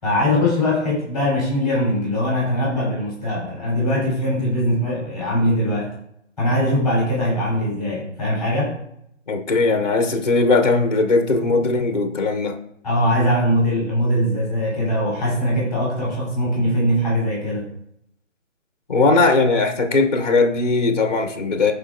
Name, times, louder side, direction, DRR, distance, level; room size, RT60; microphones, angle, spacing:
voice 1, 0.0-5.9 6.4-8.8 12.8-17.7, equal, ahead, 3.5 m, -21 dB
voice 2, 9.3-12.6 18.9-21.7, left 3 dB, 35° left, 0.8 m, -19 dB
14.5 x 5.0 x 2.6 m
figure-of-eight pair, 165°, 39 cm